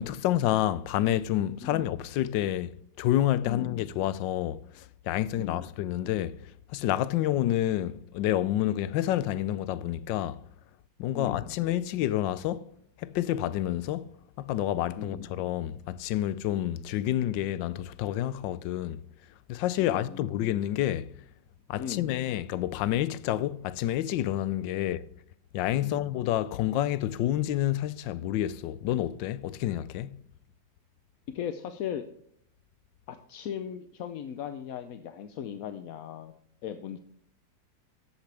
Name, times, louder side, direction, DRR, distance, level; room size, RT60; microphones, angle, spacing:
voice 1, 0.0-6.4 6.7-10.4 11.0-12.7 13.0-14.1 14.4-19.0 19.5-21.1 21.7-25.0 25.5-30.2, left 13 dB, 85° left, 1.3 m, -29 dB
voice 2, 1.6-1.9 3.4-3.9 5.4-5.7 11.1-11.6 15.0-15.3 19.8-20.5 21.8-22.2 25.8-26.1 31.3-32.1 33.1-36.3 36.6-37.0, left 9 dB, 65° left, 1.0 m, -38 dB
13.5 x 8.7 x 3.3 m
omnidirectional pair, 2.0 m